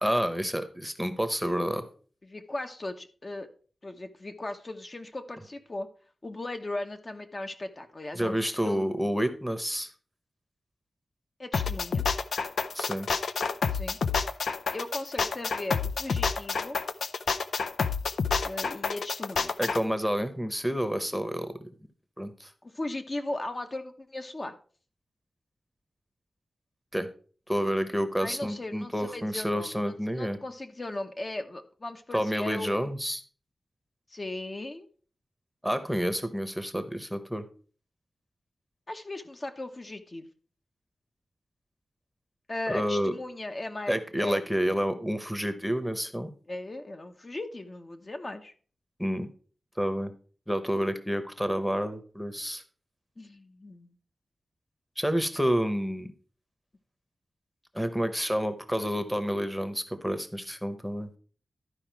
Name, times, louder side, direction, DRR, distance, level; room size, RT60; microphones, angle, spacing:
voice 1, 0.0-1.8 8.1-9.9 12.7-13.1 19.6-21.5 22.2-22.5 26.9-27.1 27.5-30.4 32.1-33.2 35.6-37.4 42.7-43.1 43.9-46.3 49.0-49.3 49.8-50.1 50.5-52.6 55.0-56.1 57.7-61.1, equal, ahead, 9 dB, 0.9 m, -29 dB
voice 2, 2.2-3.5 3.8-5.9 6.2-8.9 11.4-12.0 13.7-14.0 14.7-16.8 18.4-19.5 22.6-24.5 28.2-32.9 34.1-34.9 38.9-40.3 42.5-44.4 46.5-48.5 53.2-53.9, left 2 dB, 35° left, 5 dB, 0.8 m, -37 dB
sound 1, 11.5-19.8, left 5 dB, 90° left, 0.5 m, -28 dB
12.0 x 4.8 x 4.6 m, 0.42 s
wide cardioid pair, 100°, 0 cm